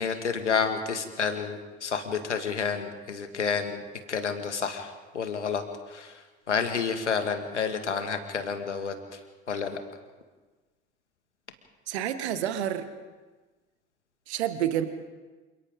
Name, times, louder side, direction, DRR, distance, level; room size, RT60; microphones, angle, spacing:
voice 1, 0.0-3.8 4.1-5.6 5.9-6.2 6.5-9.2 9.5-9.8, left 6 dB, 80° left, 7 dB, 2.1 m, -30 dB
voice 2, 11.9-12.9 14.3-14.9, right 10 dB, 65° right, 10 dB, 1.7 m, -28 dB
28.5 x 27.0 x 3.8 m, 1.3 s
figure-of-eight pair, 65°, 35 cm